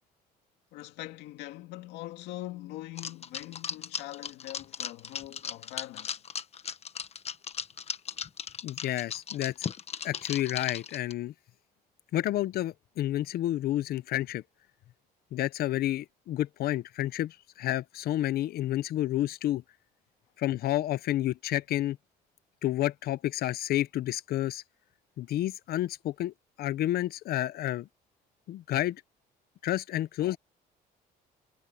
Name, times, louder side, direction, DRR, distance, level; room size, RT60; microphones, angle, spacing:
voice 1, 0.7-6.2, left 16 dB, 90° left, 2.4 m, -42 dB
sound 1, 3.0-11.1, left 7 dB, 40° left, 1.3 m, -37 dB
voice 2, 8.6-9.5 10.0-11.3 12.1-14.4 15.3-19.6 20.4-22.0 22.6-24.6 25.2-26.3 26.6-27.9 28.5-29.0 29.6-30.4, left 14 dB, 65° left, 0.8 m, -30 dB
cardioid pair, 110°, 17 cm